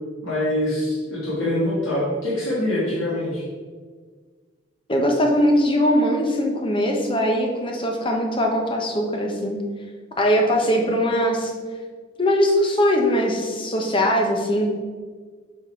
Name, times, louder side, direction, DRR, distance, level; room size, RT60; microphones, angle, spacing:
voice 1, 0.2-3.4, left 1 dB, 85° left, -8 dB, 1.9 m, -24 dB
voice 2, 4.9-9.6 10.2-11.5 12.2-14.7, equal, 25° left, 1 dB, 0.9 m, -21 dB
7.1 x 4.2 x 4.5 m, 1.5 s
head